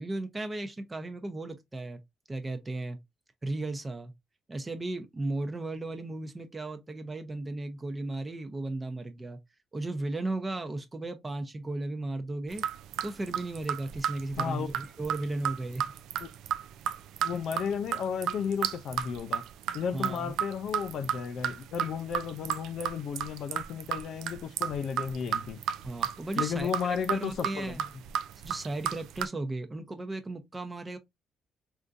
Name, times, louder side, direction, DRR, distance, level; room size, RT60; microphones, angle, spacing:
voice 1, 0.0-2.0 2.3-3.0 3.4-4.1 4.5-9.4 9.7-12.6 13.0-15.9 17.3-17.4 19.9-20.3 25.8-27.8 28.4-31.0, right 2 dB, 25° right, 0.7 m, -35 dB
sound 1, 12.5-29.3, right 9 dB, 85° right, 0.3 m, -33 dB
voice 2, 14.4-14.7 16.2-16.3 17.2-19.4 19.7-25.6 26.4-27.8, left 7 dB, 70° left, 0.4 m, -33 dB
3.6 x 2.6 x 2.4 m
cardioid pair, 90°, 0 cm